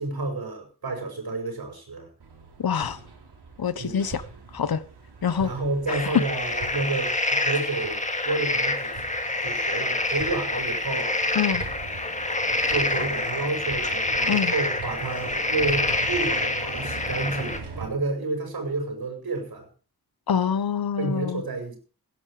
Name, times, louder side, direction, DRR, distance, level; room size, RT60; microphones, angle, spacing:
voice 1, 0.0-2.1 3.8-4.0 5.4-9.0 9.4-11.1 12.7-19.7 21.0-21.8, right 3 dB, 70° right, 5.8 m, -30 dB
Hammer, 2.2-17.9, right 4 dB, 85° right, 4.2 m, -42 dB
voice 2, 2.6-3.0 3.6-4.2 4.5-4.8 5.2-5.5 6.1-6.2 11.3-11.6 14.3-14.5 20.3-21.4, left 7 dB, 70° left, 1.0 m, -25 dB
sound 1, 5.9-17.6, left 2 dB, 20° left, 2.0 m, -27 dB
17.0 x 11.0 x 4.9 m
wide cardioid pair, 140°, 38 cm